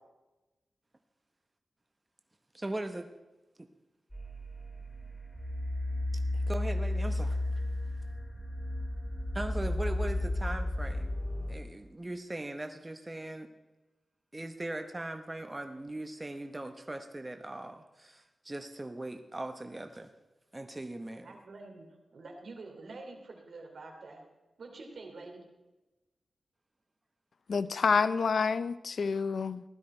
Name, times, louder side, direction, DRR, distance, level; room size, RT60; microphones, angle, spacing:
voice 1, 2.5-3.1 3.6-3.7 6.3-7.4 9.3-11.1 11.5-13.5 14.3-20.1 20.5-21.3, right 1 dB, 20° right, 7 dB, 0.9 m, -39 dB
sound 1, 4.1-11.5, left 1 dB, 10° left, 3.6 m, -33 dB
voice 2, 21.2-21.8 22.1-24.2 24.6-25.4, right 3 dB, 70° right, 2 dB, 3.0 m, -47 dB
voice 3, 27.5-29.6, left 5 dB, 70° left, 15 dB, 0.5 m, -28 dB
15.5 x 12.5 x 4.4 m, 1.1 s
wide cardioid pair, 80°, 0 cm